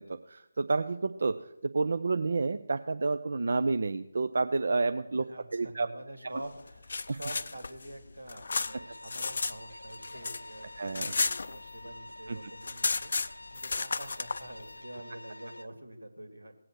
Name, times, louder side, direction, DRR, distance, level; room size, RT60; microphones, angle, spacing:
voice 1, 0.0-5.3 5.5-5.9 7.1-7.2 10.8-11.1 12.3-12.4, right 3 dB, 55° right, 9 dB, 0.5 m, -30 dB
voice 2, 5.3-16.5, right 1 dB, 85° right, 6 dB, 2.6 m, -46 dB
sound 1, 6.6-9.6 9.9-12.0 12.3-12.4 12.6-14.4, left 4 dB, 50° left, 0.5 m, -33 dB
sound 2, 8.6-15.7, left 1 dB, 85° left, 1.1 m, -48 dB
18.5 x 7.8 x 6.1 m, 0.86 s
figure-of-eight pair, 155°, 0 cm